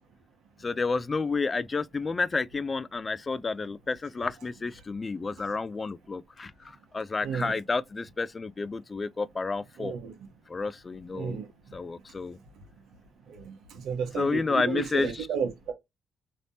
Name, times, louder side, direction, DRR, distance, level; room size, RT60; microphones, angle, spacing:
voice 1, 0.6-9.9 10.5-11.4 11.7-12.4 14.2-15.1, left 4 dB, 30° left, 0.3 m, -30 dB
voice 2, 7.2-7.5 9.8-10.1 11.1-11.7 13.3-15.7, right 6 dB, 80° right, 1.0 m, -33 dB
3.2 x 2.9 x 2.6 m
cardioid pair, 90°, 0 cm